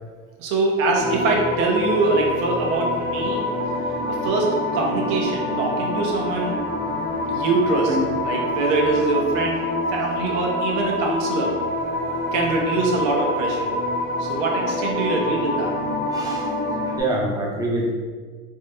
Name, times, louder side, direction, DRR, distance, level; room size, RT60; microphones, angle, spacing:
voice 1, 0.4-3.4 4.1-6.6 7.3-8.0 8.2-9.6 9.9-11.6 12.3-13.7 14.2-15.7, right 3 dB, 85° right, 0 dB, 0.7 m, -23 dB
sound 1, 0.9-17.0, left 2 dB, 35° left, 0.8 m, -26 dB
voice 2, 16.1-16.5 17.0-17.9, right 1 dB, 10° right, -2 dB, 0.5 m, -25 dB
3.4 x 2.0 x 3.2 m, 1.5 s
cardioid pair, 140°, 30 cm